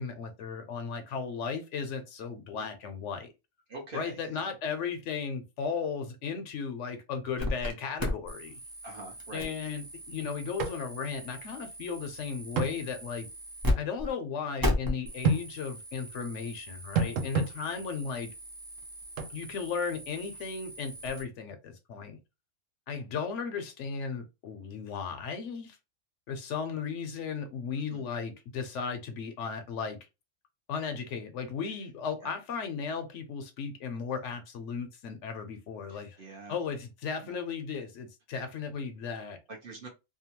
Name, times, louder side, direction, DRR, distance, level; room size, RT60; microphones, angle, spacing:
voice 1, 0.0-3.3 3.9-8.5 9.3-13.3 13.8-18.3 19.3-22.2 22.9-25.8 26.3-30.0 30.7-36.2 36.5-39.4, left 6 dB, 70° left, 0.9 m, -35 dB
voice 2, 3.7-4.2 8.8-9.5 27.9-28.0 32.2-32.3 35.9-36.6 37.2-37.4 39.5-39.9, right 2 dB, 50° right, 0.8 m, -44 dB
sound 1, 7.4-7.7 8.0-13.7 14.0-14.1 14.6-21.2, left 1 dB, 25° right, 0.5 m, -37 dB
sound 2, 10.6-10.8 11.1-11.2 12.6-12.8 15.2-15.5 17.0-17.5 19.2-19.3, right 4 dB, 80° right, 1.0 m, -27 dB
2.7 x 2.2 x 2.9 m
omnidirectional pair, 1.4 m